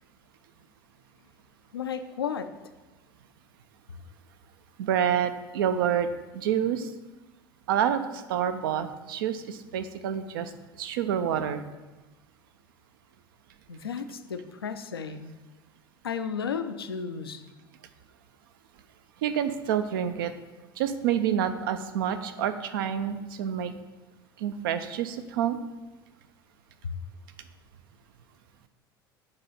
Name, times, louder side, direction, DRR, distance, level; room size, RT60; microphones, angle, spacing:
voice 1, 1.7-2.5 13.7-15.3 16.0-17.4 26.8-26.9, left 6 dB, 85° left, 8 dB, 0.4 m, -33 dB
voice 2, 4.8-6.1 6.3-6.9 7.7-10.5 10.8-11.6 19.2-20.3 20.8-23.7 24.4-25.6, right 9 dB, 70° right, 10 dB, 0.5 m, -28 dB
7.7 x 3.0 x 5.6 m, 1.2 s
figure-of-eight pair, 70°, 12 cm